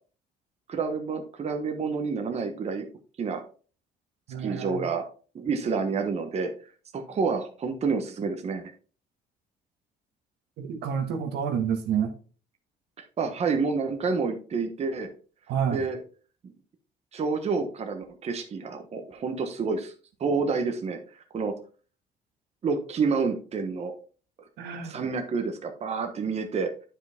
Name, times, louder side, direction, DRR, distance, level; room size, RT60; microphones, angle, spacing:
voice 1, 0.7-2.9 3.2-3.4 4.4-5.0 5.3-6.5 6.9-8.6 13.2-15.1 15.7-16.0 16.4-16.5 17.1-19.9 20.2-21.0 21.3-21.5 22.6-24.0 24.8-26.7, right 4 dB, 40° right, 5 dB, 1.1 m, -28 dB
voice 2, 4.3-4.9 10.6-12.1 15.5-15.8 24.6-25.0, right 7 dB, 80° right, 4 dB, 1.6 m, -29 dB
9.0 x 5.0 x 3.5 m, 0.39 s
cardioid pair, 110°, 17 cm